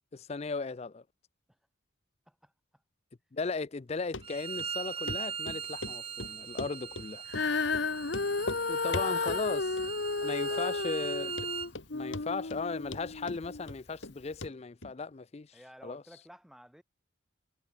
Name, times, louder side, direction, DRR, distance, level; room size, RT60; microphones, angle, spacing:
voice 1, 0.1-1.0 3.3-7.2 8.7-9.7 10.2-11.3 11.9-15.6 15.8-16.0, left 4 dB, 30° left, 0.4 m, -37 dB
voice 2, 2.3-2.8 8.5-9.2 10.2-10.9 15.5-16.8, equal, ahead, 6.6 m, -54 dB
Run, 4.1-4.2 4.6-4.7 5.1-5.2 5.5-7.1 7.3-7.5 7.7-7.8 8.1-8.6 8.9-9.4 9.8-10.2 10.5-10.6 11.0-11.1 11.4-11.9 12.1-12.6 12.9-14.1 14.4-14.5 14.8-14.9, left 2 dB, 75° left, 3.1 m, -39 dB
Bowed string instrument, 4.2-11.7, right 7 dB, 30° right, 0.6 m, -40 dB
Female singing, 7.3-13.6 14.3-14.4, left 3 dB, 60° left, 1.0 m, -33 dB
head